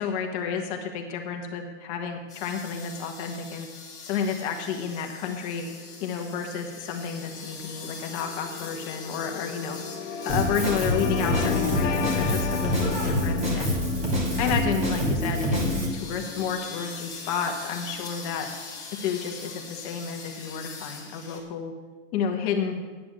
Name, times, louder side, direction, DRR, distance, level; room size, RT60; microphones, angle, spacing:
voice 1, 0.0-3.7 4.0-5.6 6.0-9.8 10.2-13.8 14.4-18.5 19.0-21.7 22.1-22.8, left 6 dB, 30° left, 3 dB, 1.3 m, -31 dB
sound 1, 2.3-21.4, left 4 dB, 10° left, 2.2 m, -43 dB
sound 2, 5.7-18.3, left 8 dB, 75° left, 1.1 m, -36 dB
Drum kit, 10.3-15.9, equal, 20° right, 2.5 m, -26 dB
10.5 x 8.5 x 7.4 m, 1.4 s
hypercardioid pair, 160°, 38 cm